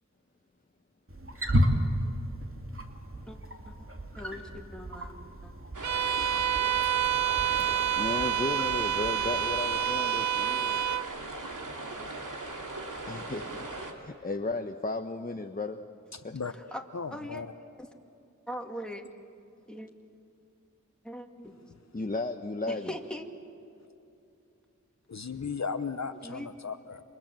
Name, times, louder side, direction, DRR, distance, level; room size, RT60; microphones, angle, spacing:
Wild animals, 1.1-9.6, equal, 45° right, 2.6 m, -33 dB
voice 1, 4.2-5.1 5.4-5.5 16.7-16.8 17.1-17.4 17.8-17.9 18.5-19.0 19.7-19.9 21.0-21.5 22.7-23.2 26.1-26.5, equal, 5° left, 3 dB, 2.4 m, -40 dB
sound 1, 5.7-13.9, right 2 dB, 85° right, 2.7 m, -39 dB
Bowed string instrument, 5.8-11.1, right 10 dB, 65° right, 0.7 m, -28 dB
voice 2, 7.9-10.8 13.1-13.7 14.0-15.8 16.2-16.4 21.9-22.9, left 3 dB, 30° left, 6 dB, 1.0 m, -34 dB
voice 3, 16.1-16.5 16.9-17.5 25.1-27.0, left 5 dB, 60° left, 9 dB, 0.9 m, -36 dB
28.5 x 25.5 x 7.6 m, 2.7 s
wide cardioid pair, 60°, 30 cm